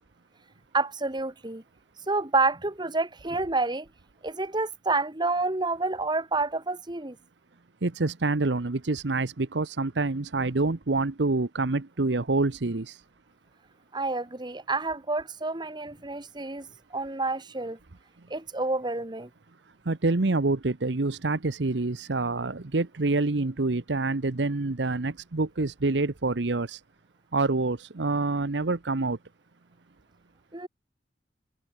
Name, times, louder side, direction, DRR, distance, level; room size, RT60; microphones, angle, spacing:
voice 1, 0.7-1.6 2.1-3.9 4.2-7.2 13.9-17.8 18.3-19.3 30.5-30.7, right 3 dB, 25° right, 1.8 m, -29 dB
voice 2, 7.8-12.9 19.9-26.8 27.3-29.2, right 3 dB, 75° right, 1.0 m, -27 dB
head